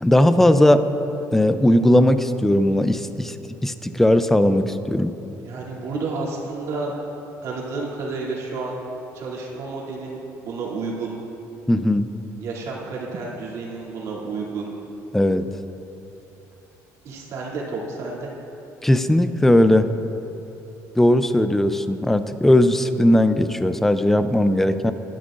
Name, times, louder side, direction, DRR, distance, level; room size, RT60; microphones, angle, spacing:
voice 1, 0.0-0.9 1.3-3.4 3.6-5.1 11.7-12.1 15.1-15.4 18.8-19.9 21.0-24.9, left 1 dB, 5° left, 10 dB, 0.4 m, -18 dB
voice 2, 5.4-6.9 7.4-8.8 9.1-10.2 10.4-11.2 12.4-14.7 17.0-18.3, right 3 dB, 60° right, -4 dB, 2.7 m, -30 dB
22.5 x 12.0 x 2.5 m, 2.9 s
cardioid pair, 145°, 6 cm